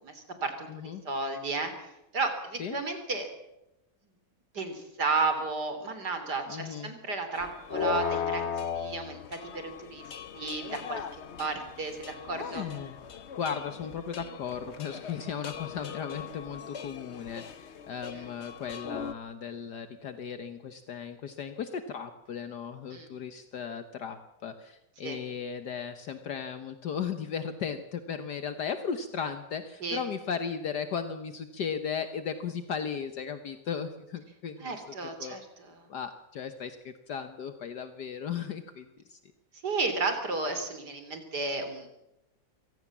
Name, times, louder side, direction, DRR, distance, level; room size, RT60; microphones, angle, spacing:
voice 1, 0.0-3.3 4.5-8.4 8.7-10.1 10.3-11.1 11.4-12.7 18.1-18.3 22.9-23.1 25.0-25.2 29.8-30.0 34.6-35.9 39.6-41.9, right 3 dB, 65° right, 7 dB, 3.9 m, -33 dB
voice 2, 0.7-1.0 2.6-2.8 6.5-6.9 12.4-13.0 13.4-34.8 35.2-35.4 35.9-39.2, left 7 dB, 65° left, 9 dB, 1.7 m, -36 dB
sound 1, 7.3-19.1, left 7 dB, 45° left, 1.0 m, -38 dB
25.5 x 17.0 x 7.3 m, 0.90 s
omnidirectional pair, 1.9 m